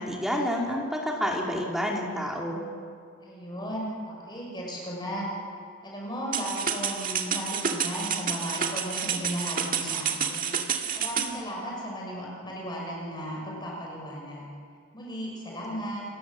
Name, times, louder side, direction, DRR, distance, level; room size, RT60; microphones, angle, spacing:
voice 1, 0.0-2.6, equal, ahead, -1 dB, 2.8 m, -29 dB
voice 2, 3.2-5.3 5.8-10.5 10.9-14.5 14.9-16.1, equal, 20° left, -2 dB, 6.3 m, -35 dB
sound 1, 6.3-11.3, right 7 dB, 40° right, 1.9 m, -29 dB
29.5 x 22.5 x 7.6 m, 2.2 s
head